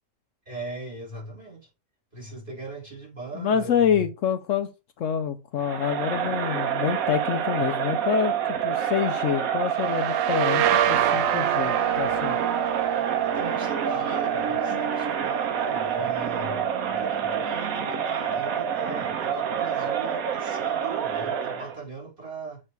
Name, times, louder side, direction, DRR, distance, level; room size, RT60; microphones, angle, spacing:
voice 1, 0.4-1.7 2.1-4.1 12.6-13.0 13.2-22.6, right 3 dB, 35° right, 3.0 m, -39 dB
voice 2, 3.3-4.7 5.0-8.4 8.6-12.4 14.7-14.8, left 8 dB, 70° left, 0.9 m, -27 dB
Crowd, 5.6-21.8, right 8 dB, 80° right, 1.3 m, -27 dB
sound 1, 9.7-17.3, right 10 dB, 65° right, 0.7 m, -28 dB
7.4 x 3.3 x 4.5 m
omnidirectional pair, 1.5 m